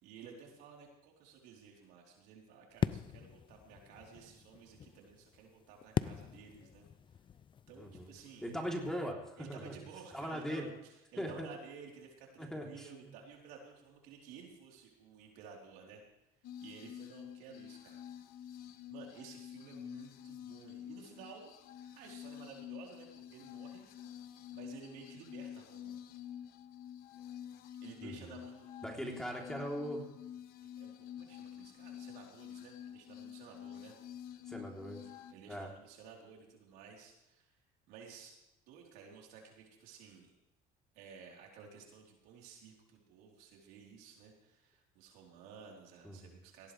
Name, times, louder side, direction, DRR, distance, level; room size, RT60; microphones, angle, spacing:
voice 1, 0.0-6.8 7.7-8.5 9.4-16.0 16.6-18.0 18.5-21.5 21.8-23.9 24.5-26.0 27.8-29.1 30.6-34.0 35.0-37.6 37.9-38.4 38.7-40.3 40.9-46.7, right 6 dB, 85° right, -1 dB, 4.0 m, -54 dB
sound 1, 2.7-9.1, left 8 dB, 30° left, 0.5 m, -41 dB
voice 2, 7.8-8.1 8.4-9.7 10.1-10.7 11.2-11.5 12.4-12.9 28.0-28.3 28.8-30.0 34.5-35.0 35.5-35.7 46.0-46.4, equal, 5° left, -1 dB, 3.5 m, -40 dB
sound 2, 16.4-35.3, left 10 dB, 70° left, 1.2 m, -49 dB
18.5 x 16.0 x 3.4 m, 0.92 s
cardioid pair, 110°, 16 cm